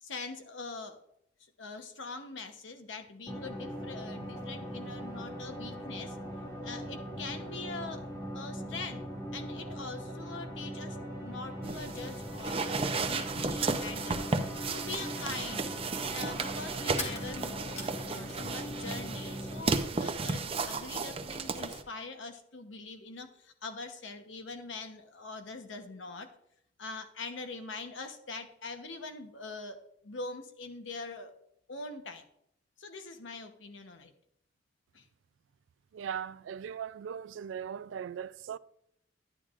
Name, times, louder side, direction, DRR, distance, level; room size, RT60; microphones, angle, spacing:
voice 1, 0.0-1.0 1.4-6.2 6.6-8.0 8.3-9.1 9.3-14.3 14.7-15.7 16.1-26.3 26.8-29.8 30.0-31.3 31.7-32.2 32.8-34.1 34.9-35.1, left 3 dB, 90° left, 1.0 m, -43 dB
sound 1, 3.3-19.6, equal, 20° left, 1.9 m, -40 dB
sound 2, 11.6-21.8, right 4 dB, 30° right, 0.6 m, -34 dB
sound 3, 17.0-18.9 19.1-20.0, left 2 dB, 35° left, 1.4 m, -43 dB
voice 2, 35.9-38.6, right 8 dB, 90° right, 0.3 m, -39 dB
10.5 x 10.0 x 2.5 m
head